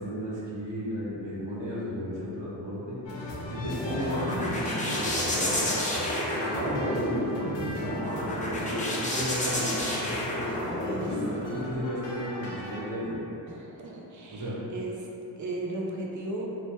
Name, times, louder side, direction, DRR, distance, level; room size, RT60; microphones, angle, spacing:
voice 1, 0.0-3.0 3.4-5.8 6.3-13.2 14.3-14.6, equal, 80° right, -9 dB, 1.0 m, -34 dB
sound 1, 3.0-12.8, left 1 dB, 80° left, 0.7 m, -39 dB
sound 2, 3.3-11.2, left 1 dB, 20° left, 0.5 m, -30 dB
voice 2, 10.8-11.2 13.5-14.9 15.4-16.5, right 2 dB, 45° right, -2 dB, 0.5 m, -36 dB
2.9 x 2.1 x 3.0 m, 3.0 s
cardioid pair, 80°, 43 cm